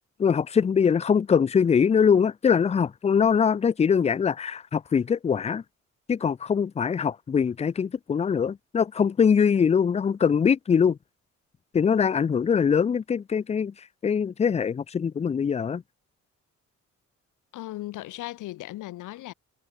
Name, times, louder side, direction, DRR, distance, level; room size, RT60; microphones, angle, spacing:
voice 1, 0.2-5.6 6.1-11.0 11.7-13.7 14.0-15.8, left 6 dB, 20° left, 0.4 m, -22 dB
voice 2, 17.5-19.3, left 16 dB, 85° left, 1.9 m, -37 dB
cardioid pair, 90°, 30 cm